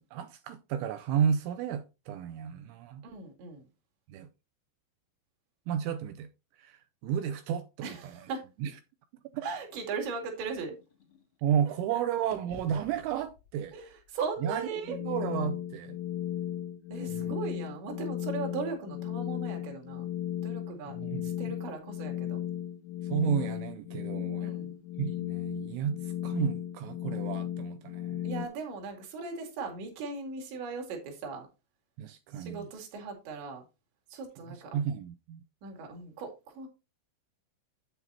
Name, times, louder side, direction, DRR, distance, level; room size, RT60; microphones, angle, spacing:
voice 1, 0.1-3.0 4.1-4.3 5.7-6.3 6.6-8.1 8.6-8.7 9.3-9.4 11.4-13.7 14.4-16.0 17.1-17.4 21.0-21.2 23.0-24.5 25.0-28.2 32.0-32.7 34.5-35.4, right 8 dB, 85° right, 2.7 m, -32 dB
voice 2, 3.0-3.7 7.8-8.5 9.4-10.8 11.9-12.0 13.7-15.0 16.9-20.1 20.4-21.0 21.2-22.4 24.4-24.8 28.2-31.5 32.3-33.7 34.1-34.8 35.6-36.7, right 4 dB, 65° right, 4.3 m, -38 dB
sound 1, 9.6-11.9 12.3-16.3, left 3 dB, 70° left, 1.1 m, -56 dB
sound 2, 14.8-28.5, left 11 dB, 85° left, 3.0 m, -35 dB
9.2 x 8.0 x 2.8 m
omnidirectional pair, 6.0 m